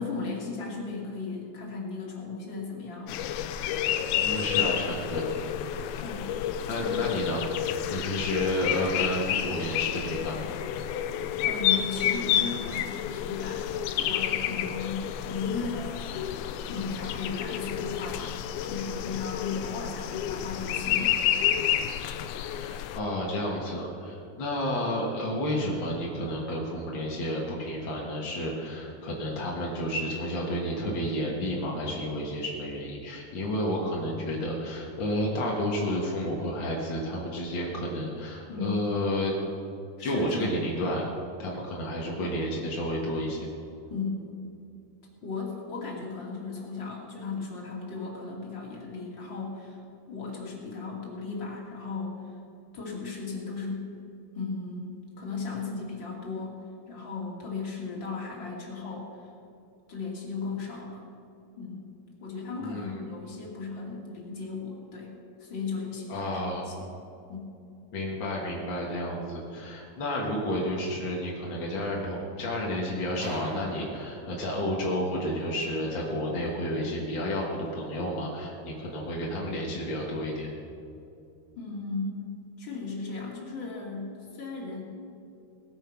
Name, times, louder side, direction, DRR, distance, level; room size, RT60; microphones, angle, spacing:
voice 1, 0.0-3.2 6.0-6.3 6.7-7.0 11.4-13.7 14.0-16.1 16.7-21.5 38.5-38.8 40.0-40.6 43.9-44.2 45.2-49.8 50.1-52.2 52.7-53.9 54.3-54.9 55.2-59.3 59.9-61.0 61.6-61.9 62.2-66.3 66.6-66.9 67.3-67.5 81.6-82.3 82.6-84.8, left 4 dB, 35° left, -3 dB, 2.6 m, -36 dB
sound 1, 3.1-23.0, left 10 dB, 80° left, 2.3 m, -30 dB
voice 2, 4.1-5.3 6.7-7.5 7.9-10.5 22.4-39.3 40.0-41.0 41.4-43.5 62.6-63.0 66.1-66.7 67.9-80.5, equal, 55° left, -3 dB, 1.2 m, -31 dB
sound 2, 73.2-75.2, right 3 dB, 50° right, 2.5 m, -43 dB
18.5 x 9.0 x 6.0 m, 2.6 s
omnidirectional pair, 4.7 m